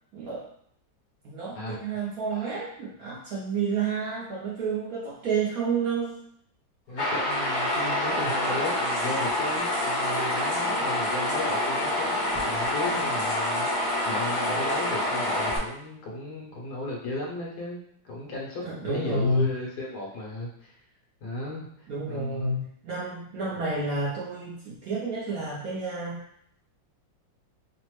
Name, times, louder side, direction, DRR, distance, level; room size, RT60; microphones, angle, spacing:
voice 1, 0.1-0.5 1.2-6.2 10.7-11.0 18.6-19.5 21.9-26.3, right 3 dB, 70° right, -6 dB, 0.9 m, -30 dB
voice 2, 6.9-20.8 21.2-21.7 22.1-22.5, left 2 dB, 65° left, -3 dB, 1.2 m, -35 dB
sound 1, 7.0-15.6, left 1 dB, 45° left, 0.8 m, -27 dB
3.2 x 2.0 x 3.0 m, 0.67 s
omnidirectional pair, 2.0 m